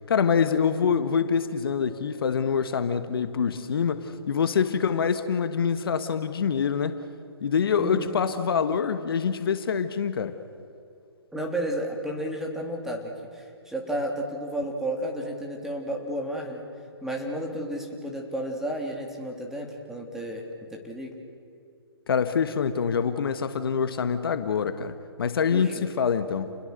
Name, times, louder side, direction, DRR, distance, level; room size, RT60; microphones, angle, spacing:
voice 1, 0.1-7.0 7.4-10.4 22.1-26.6, left 6 dB, 60° left, 10 dB, 1.5 m, -25 dB
voice 2, 7.8-8.2 11.3-16.6 17.0-21.1 25.5-25.9, right 1 dB, 5° right, 1 dB, 3.2 m, -32 dB
30.0 x 20.5 x 6.7 m, 2.6 s
figure-of-eight pair, 135°, 13 cm